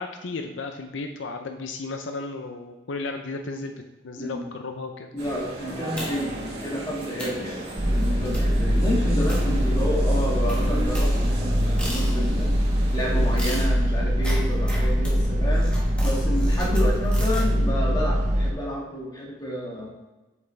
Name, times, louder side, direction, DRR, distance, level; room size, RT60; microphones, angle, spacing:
voice 1, 0.0-3.7 4.0-5.1, left 3 dB, 75° left, 5 dB, 0.6 m, -34 dB
voice 2, 5.1-12.5 12.9-15.7 16.0-19.9, equal, 20° left, -3 dB, 1.7 m, -30 dB
sound 1, 5.2-13.4, right 1 dB, 55° right, 2.0 m, -36 dB
sound 2, 6.0-6.4 6.9-7.0 7.2-7.5 8.3-8.6 9.3-10.0 10.5-12.5 13.4-17.5, equal, 5° left, 1.5 m, -38 dB
sound 3, 7.8-18.5, equal, 40° right, 0.8 m, -22 dB
8.0 x 5.9 x 3.3 m, 1.1 s
head